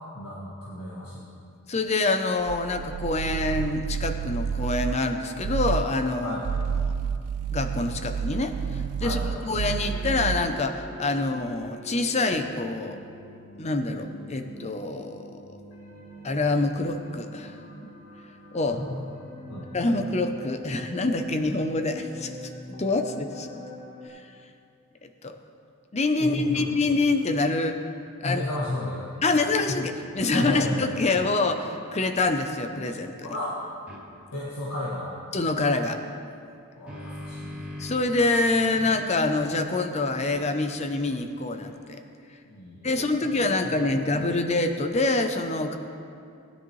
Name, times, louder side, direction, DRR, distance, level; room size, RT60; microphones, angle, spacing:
voice 1, 0.1-1.2 6.2-6.5 9.0-9.4 18.6-19.1 19.5-19.7 26.2-26.6 28.2-29.4 29.7-29.8 30.3-30.8 33.3-33.6 34.3-35.1 36.8-37.7 42.5-42.9 43.2-43.3 43.6-44.0, left 1 dB, 90° left, -6 dB, 1.7 m, -33 dB
voice 2, 1.7-6.4 6.9-7.0 7.5-13.0 13.6-15.6 16.2-17.6 18.5-18.8 19.7-22.3 22.7-23.5 24.1-24.2 25.0-25.4 25.9-27.8 28.2-28.4 29.2-33.1 35.3-36.0 37.8-42.0 42.8-45.8, left 2 dB, 30° left, 7 dB, 0.6 m, -26 dB
sound 1, 2.4-5.1 5.4-5.9 6.3-10.6, right 6 dB, 80° right, 0.4 m, -30 dB
sound 2, 9.6-24.1, equal, 65° left, 2.7 m, -44 dB
sound 3, 33.9-34.0 36.4-38.2 38.7-42.1, left 1 dB, 5° right, 3.3 m, -42 dB
19.0 x 10.0 x 3.2 m, 2.5 s
head